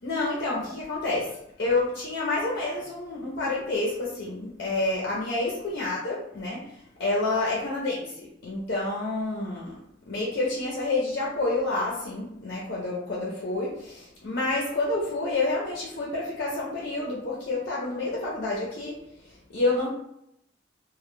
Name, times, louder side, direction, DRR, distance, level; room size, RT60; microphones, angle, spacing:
voice 1, 0.0-6.6 7.0-9.7 10.1-18.9 19.2-19.9, left 2 dB, 55° left, -4 dB, 0.5 m, -29 dB
2.1 x 2.1 x 3.1 m, 0.78 s
head